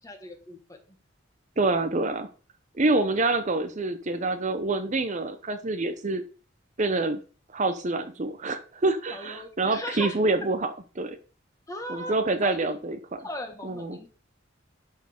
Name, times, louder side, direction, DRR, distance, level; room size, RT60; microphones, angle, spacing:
voice 1, 0.0-0.8 9.1-10.2 11.7-12.1 12.4-12.7 13.2-14.1, left 1 dB, 15° left, 4 dB, 1.8 m, -38 dB
voice 2, 1.6-2.3 2.7-6.2 6.8-7.2 7.5-11.2 11.9-13.0 13.6-14.0, right 2 dB, 40° right, 9 dB, 0.8 m, -26 dB
11.0 x 4.6 x 5.3 m, 0.37 s
head